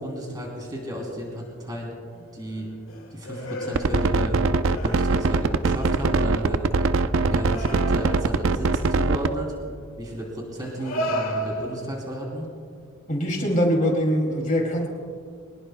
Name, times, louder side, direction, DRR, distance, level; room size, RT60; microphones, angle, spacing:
voice 1, 0.0-1.9 2.3-2.7 3.1-6.7 7.2-9.5 10.0-12.5, equal, 20° right, -1 dB, 3.0 m, -33 dB
sound 1, 1.2-1.7 2.1-4.4 4.7-5.4 5.9-6.2 7.4-8.4 9.6-9.8 10.6-12.1 13.5-13.6, equal, 80° left, 2.0 m, -34 dB
sound 2, 3.8-9.3, right 3 dB, 65° right, 0.5 m, -22 dB
voice 2, 13.1-14.9, equal, 35° left, 0 dB, 2.5 m, -22 dB
23.0 x 20.0 x 2.2 m, 2.2 s
head